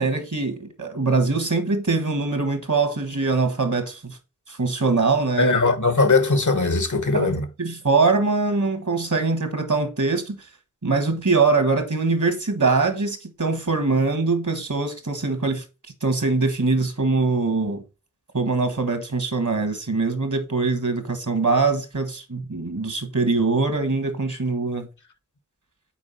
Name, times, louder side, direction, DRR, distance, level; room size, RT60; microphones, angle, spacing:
voice 1, 0.0-4.2 4.5-5.5 7.1-10.4 10.8-15.6 16.0-17.8 18.3-24.9, right 3 dB, 75° right, 1.6 m, -23 dB
voice 2, 5.4-7.5, left 3 dB, 75° left, 1.1 m, -20 dB
6.0 x 4.5 x 5.7 m
wide cardioid pair, 40°, 30 cm